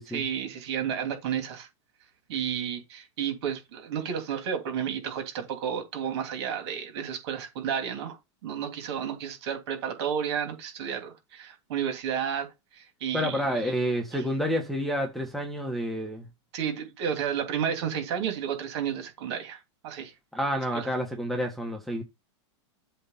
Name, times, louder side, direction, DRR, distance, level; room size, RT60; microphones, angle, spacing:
voice 1, 0.1-1.7 2.3-12.5 12.7-13.7 14.1-14.2 16.5-20.1 20.7-20.9, right 8 dB, 60° right, 3.0 m, -32 dB
voice 2, 13.1-16.3 20.3-22.0, equal, ahead, 1.3 m, -29 dB
7.8 x 3.3 x 5.7 m
supercardioid pair, 145°, 15 cm